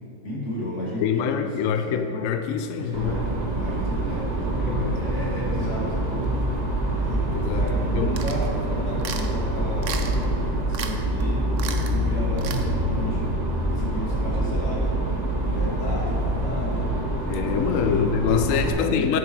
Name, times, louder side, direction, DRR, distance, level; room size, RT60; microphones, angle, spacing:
voice 1, 0.2-2.0 2.7-6.1 7.0-7.2 7.5-10.3 10.6-11.4 11.8-13.3 13.7-15.1 15.4-17.0 17.6-18.2 18.4-19.0, equal, 40° left, -6 dB, 2.7 m, -33 dB
voice 2, 1.0-3.2 4.7-5.0 7.3-7.6 7.9-8.1 17.3-19.2, left 7 dB, 80° left, 7 dB, 0.7 m, -25 dB
sound 1, 2.9-18.7, right 1 dB, 25° right, 1.1 m, -25 dB
sound 2, 8.2-8.5 9.0-9.3 9.8-10.2 10.7-10.9 11.2-11.3 11.6-11.9 12.4-12.6, right 7 dB, 60° right, 0.8 m, -33 dB
11.0 x 7.4 x 4.5 m, 2.5 s
omnidirectional pair, 2.0 m